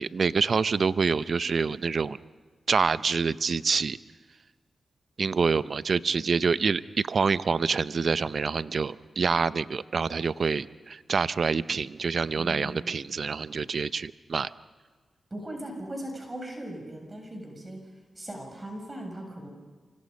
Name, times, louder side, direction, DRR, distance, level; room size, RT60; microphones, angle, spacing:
voice 1, 0.0-2.2 2.7-4.0 5.2-14.5, right 5 dB, 65° right, 16 dB, 0.7 m, -26 dB
voice 2, 12.4-13.1 15.3-17.8 18.2-19.5, right 1 dB, 30° right, 2 dB, 7.0 m, -39 dB
28.0 x 25.0 x 5.4 m, 1.4 s
cardioid pair, 50°, 0 cm